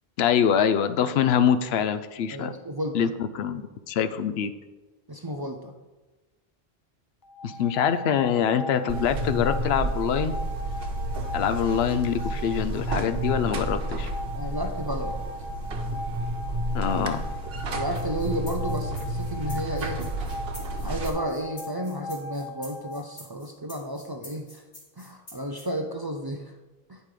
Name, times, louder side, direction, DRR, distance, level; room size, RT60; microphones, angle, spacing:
voice 1, 0.2-2.5 2.9-3.1 3.3-4.5 7.4-10.3 11.3-14.1 16.7-17.2, left 8 dB, 85° left, 12 dB, 0.8 m, -24 dB
voice 2, 2.3-3.1 5.1-5.7 11.4-11.5 14.3-15.2 17.7-20.0 20.8-24.6 25.0-26.5 26.9-27.0, equal, 30° right, 3 dB, 0.4 m, -32 dB
sound 1, 7.2-23.0, left 1 dB, 35° left, 0.3 m, -39 dB
Buzz, 8.9-21.1, right 1 dB, 70° right, 1.0 m, -31 dB
sound 2, 17.9-25.6, left 1 dB, 60° left, 2.1 m, -47 dB
9.1 x 5.3 x 4.9 m, 1.2 s
omnidirectional pair, 1.0 m